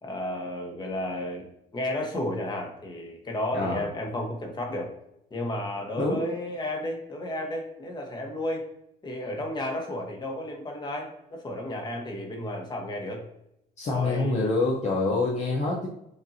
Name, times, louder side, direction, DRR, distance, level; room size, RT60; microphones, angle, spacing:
voice 1, 0.0-1.5 1.7-4.9 5.3-8.6 9.0-13.3 13.9-14.4, left 1 dB, 25° left, 1 dB, 1.3 m, -32 dB
voice 2, 6.0-6.3 13.8-15.9, left 3 dB, 45° left, -2 dB, 0.9 m, -26 dB
6.9 x 2.7 x 2.8 m, 0.80 s
cardioid pair, 110°, 17 cm